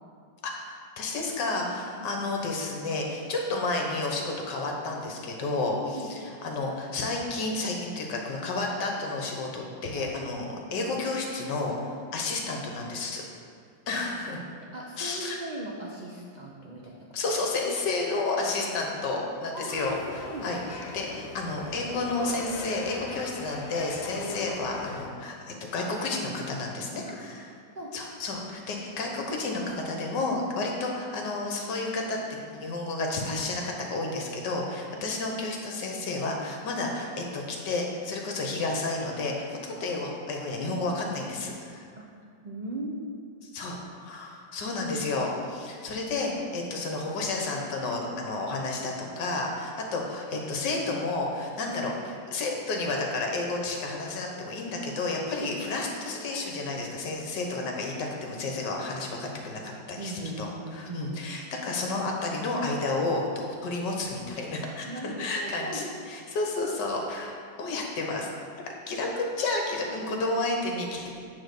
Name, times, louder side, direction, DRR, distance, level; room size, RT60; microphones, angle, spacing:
voice 1, 1.0-13.2 13.9-14.5 15.0-15.4 17.1-27.5 27.9-32.2 32.5-41.9 43.5-63.2 63.6-68.3 68.6-71.1, left 2 dB, 65° left, 0 dB, 1.6 m, -31 dB
voice 2, 14.7-17.1 19.5-19.9 20.3-20.5 24.2-24.4 27.1-27.2 27.7-27.9 35.0-35.1 42.0-42.1 42.4-43.0 55.4-55.6 60.0-61.1 63.7-63.8 64.8-65.9 68.9-69.4, right 2 dB, 90° right, -4 dB, 0.3 m, -38 dB
sound 1, 19.7-25.1, left 3 dB, 80° left, 0.5 m, -39 dB
8.8 x 3.9 x 6.7 m, 2.2 s
omnidirectional pair, 2.1 m